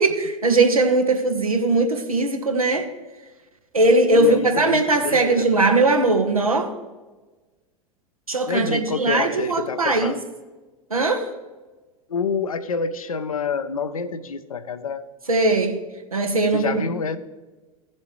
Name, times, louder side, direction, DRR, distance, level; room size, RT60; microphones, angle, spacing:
voice 1, 0.0-2.9 3.7-6.7 8.3-10.1 10.9-11.3 15.3-15.8 16.1-16.8, right 2 dB, 90° right, 4 dB, 1.2 m, -20 dB
voice 2, 4.1-5.5 8.5-10.2 12.1-15.0 16.5-17.2, left 5 dB, 80° left, 11 dB, 0.7 m, -27 dB
15.5 x 7.3 x 3.2 m, 1.2 s
figure-of-eight pair, 85°, 18 cm